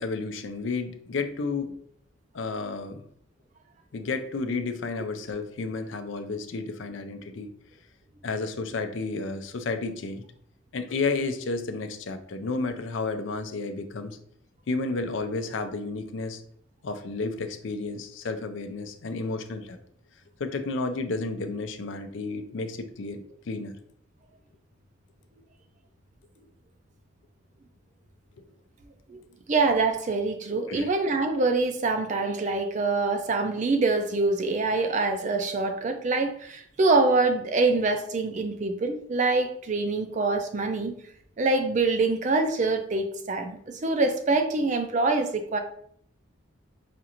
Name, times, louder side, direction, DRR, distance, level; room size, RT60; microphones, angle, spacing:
voice 1, 0.0-1.7 2.3-3.0 3.9-7.5 8.2-10.2 10.7-14.2 14.7-16.4 16.8-19.8 20.4-23.8 30.7-30.9, left 3 dB, 70° left, 8 dB, 0.4 m, -31 dB
voice 2, 29.5-40.9 41.4-45.6, right 3 dB, 40° right, 5 dB, 0.4 m, -25 dB
5.0 x 2.5 x 2.9 m, 0.65 s
head